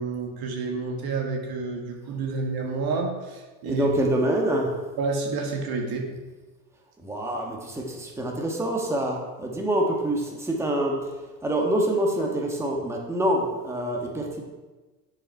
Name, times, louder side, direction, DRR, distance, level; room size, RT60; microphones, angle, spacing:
voice 1, 0.0-3.9 5.0-6.1, right 4 dB, 55° right, 1 dB, 1.5 m, -29 dB
voice 2, 3.6-4.9 7.0-14.4, right 1 dB, 5° right, -1 dB, 1.4 m, -26 dB
7.8 x 4.9 x 4.5 m, 1.2 s
hypercardioid pair, 85°, 45 cm